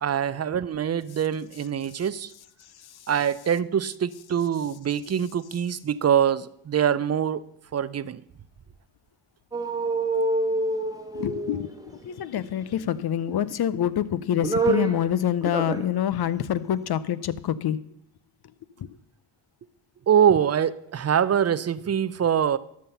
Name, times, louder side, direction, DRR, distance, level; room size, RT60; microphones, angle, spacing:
voice 1, 0.0-2.3 3.1-7.4 7.7-8.2 20.1-22.6, right 8 dB, 30° right, 17 dB, 0.6 m, -24 dB
sound 1, 9.5-12.1 13.3-13.9 14.2-15.1 15.4-15.9 16.3-16.4, right 2 dB, 5° right, 1.3 m, -27 dB
voice 2, 11.1-11.7 12.0-17.8 18.8-18.9, left 10 dB, 50° left, 16 dB, 0.7 m, -26 dB
12.5 x 5.7 x 5.5 m, 0.75 s
supercardioid pair, 55°, 50 cm